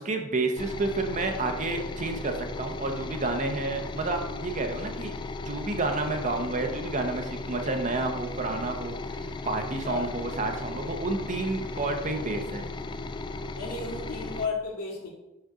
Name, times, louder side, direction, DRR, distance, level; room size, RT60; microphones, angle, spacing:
voice 1, 0.0-5.1 5.4-12.7, right 2 dB, 35° right, 4 dB, 0.8 m, -30 dB
sound 1, 0.6-14.5, left 2 dB, 20° left, 0.3 m, -36 dB
voice 2, 13.5-15.1, left 4 dB, 80° left, -3 dB, 2.2 m, -33 dB
6.4 x 6.2 x 3.6 m, 0.96 s
head